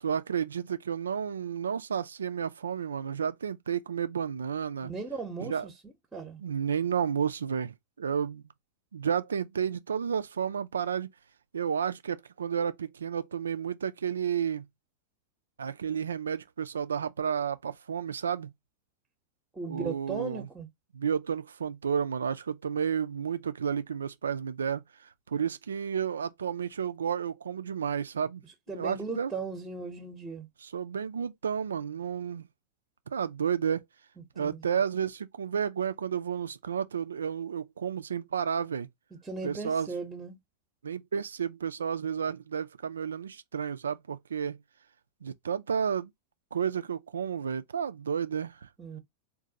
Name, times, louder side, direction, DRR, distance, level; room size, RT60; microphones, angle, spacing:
voice 1, 0.0-4.9 5.4-5.7 6.4-8.4 8.9-11.1 11.5-14.7 15.6-18.5 19.7-20.5 20.9-28.4 28.7-29.3 30.6-32.5 33.1-33.8 34.4-38.9 39.4-39.9 40.8-44.6 45.2-46.1 46.5-48.7, right 7 dB, 70° right, 0.3 m, -31 dB
voice 2, 4.8-6.4 19.5-20.7 28.7-30.5 34.4-34.6 39.2-40.4 48.8-49.0, right 4 dB, 10° right, 0.8 m, -37 dB
3.9 x 2.2 x 2.7 m
figure-of-eight pair, 90°, 0 cm